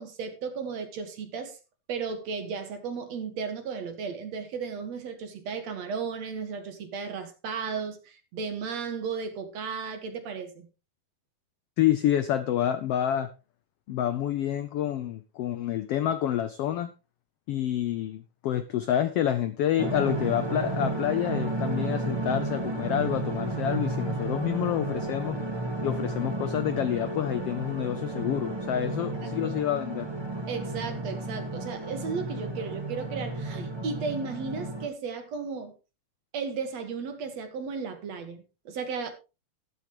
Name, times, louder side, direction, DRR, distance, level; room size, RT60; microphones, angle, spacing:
voice 1, 0.0-1.6 1.9-10.7 29.2-29.5 30.5-35.7 36.3-39.1, right 5 dB, 60° right, 2.8 m, -35 dB
voice 2, 11.8-13.3 13.9-16.9 17.5-25.4 25.8-30.1, left 11 dB, 75° left, 1.4 m, -28 dB
sound 1, 19.8-34.9, right 2 dB, 20° right, 0.6 m, -32 dB
13.0 x 12.5 x 3.1 m
omnidirectional pair, 3.6 m